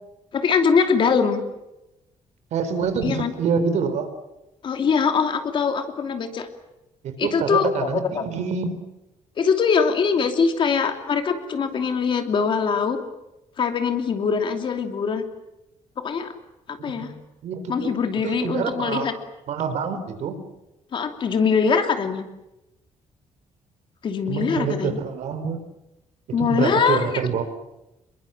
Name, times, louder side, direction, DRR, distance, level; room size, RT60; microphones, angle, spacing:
voice 1, 0.3-1.4 3.0-3.3 4.6-6.5 7.2-8.2 9.4-13.0 13.6-15.2 16.0-16.3 16.7-17.1 17.7-19.1 20.9-22.3 24.0-25.0 26.3-27.2, left 6 dB, 40° left, 6 dB, 2.8 m, -22 dB
voice 2, 2.5-4.1 7.0-8.8 16.8-17.2 17.4-18.0 18.2-19.1 19.5-20.4 24.3-25.6 26.4-27.4, right 6 dB, 65° right, 9 dB, 4.1 m, -26 dB
27.5 x 22.5 x 7.6 m, 0.94 s
cardioid pair, 175°, 12 cm